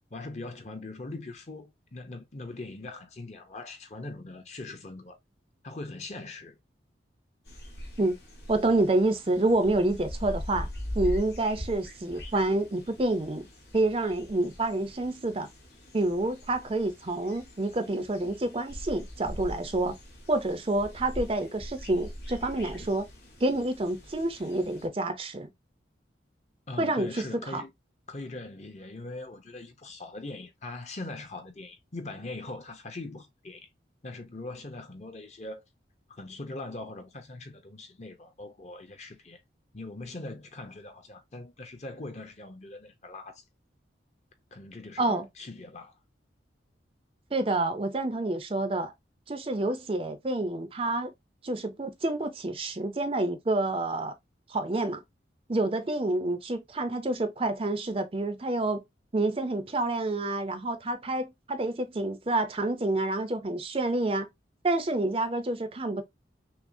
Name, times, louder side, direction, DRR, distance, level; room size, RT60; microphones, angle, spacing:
voice 1, 0.1-5.2 5.6-6.6 26.7-27.7 28.1-33.7 34.0-35.6 36.1-39.4 39.7-43.4 44.5-45.9, left 2 dB, 35° left, 0.7 m, -41 dB
sound 1, 7.5-24.9, equal, 60° left, 1.3 m, -42 dB
voice 2, 8.5-10.7 10.9-13.5 13.7-15.5 15.9-20.0 20.3-23.1 23.4-25.5 26.8-27.6 45.0-45.3 47.3-48.9 49.3-51.1 51.4-54.1 54.5-55.0 55.5-58.8 59.1-64.3 64.6-66.0, right 2 dB, 30° right, 0.5 m, -28 dB
5.9 x 2.0 x 2.6 m
head